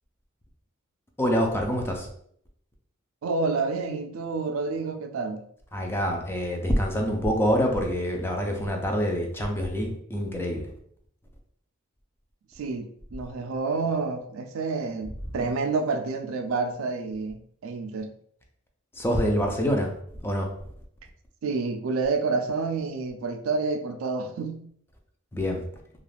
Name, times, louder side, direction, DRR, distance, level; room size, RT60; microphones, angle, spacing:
voice 1, 1.2-2.1 5.7-10.7 18.9-20.5 25.3-25.7, equal, 10° left, 2 dB, 0.4 m, -26 dB
voice 2, 3.2-5.4 12.6-18.1 21.4-24.6, right 4 dB, 80° right, 7 dB, 0.4 m, -29 dB
2.4 x 2.3 x 3.3 m, 0.66 s
head